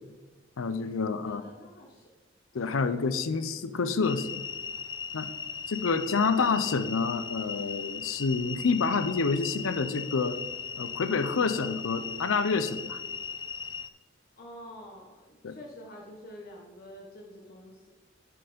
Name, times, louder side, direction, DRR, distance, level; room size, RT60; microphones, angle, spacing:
voice 1, 0.6-1.4 2.5-4.4 5.1-5.3 5.7-10.4 10.8-13.0 15.4-15.6, left 4 dB, 85° left, 12 dB, 0.6 m, -28 dB
voice 2, 1.2-2.1 14.4-17.9, left 1 dB, 50° left, -1 dB, 1.0 m, -47 dB
sound 1, 4.0-13.9, left 6 dB, 20° left, 0.4 m, -38 dB
7.6 x 6.9 x 5.1 m, 1.2 s
head